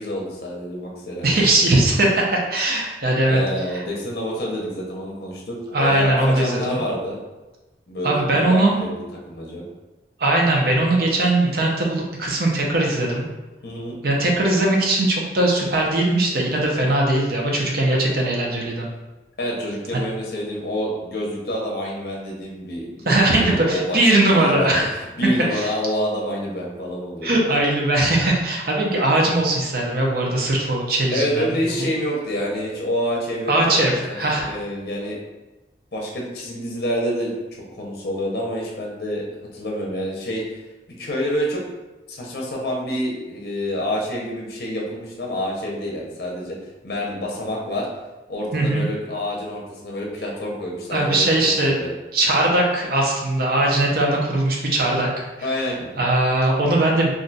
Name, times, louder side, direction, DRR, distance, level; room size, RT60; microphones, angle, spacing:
voice 1, 0.0-1.4 3.2-7.2 7.9-9.0 9.3-9.6 13.6-14.0 19.4-27.3 31.1-35.2 35.9-37.3 37.8-39.3 39.5-40.4 41.0-41.6 42.1-46.6 46.8-47.9 48.3-51.9 55.4-56.0, equal, 60° left, -2 dB, 0.6 m, -27 dB
voice 2, 1.2-3.4 3.7-3.8 5.7-6.8 8.0-8.8 10.2-13.3 14.0-18.9 19.9-20.0 23.1-24.9 25.5-25.7 27.2-31.4 33.5-34.5 48.5-48.8 50.9-51.8 52.1-55.3 56.0-57.1, right 1 dB, 55° right, -2 dB, 0.6 m, -20 dB
2.5 x 2.2 x 3.9 m, 1.1 s
head